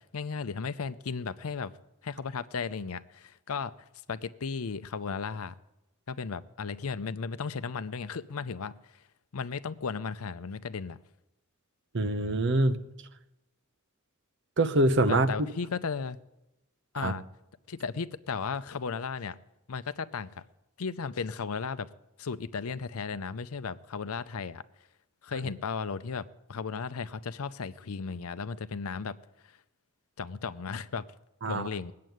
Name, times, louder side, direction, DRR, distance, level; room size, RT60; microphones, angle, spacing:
voice 1, 0.0-1.7 2.0-3.7 4.1-5.5 6.1-9.0 9.3-11.0 15.1-16.2 16.9-17.2 17.7-19.4 19.7-20.4 20.8-21.9 22.2-24.6 25.2-29.2 29.4-29.6 30.2-31.1 31.5-31.9, left 5 dB, 70° left, 14 dB, 0.6 m, -35 dB
voice 2, 11.9-12.8 14.6-15.5 17.0-17.1 31.4-31.7, right 2 dB, 55° right, 10 dB, 0.9 m, -25 dB
19.0 x 7.6 x 9.3 m, 0.93 s
head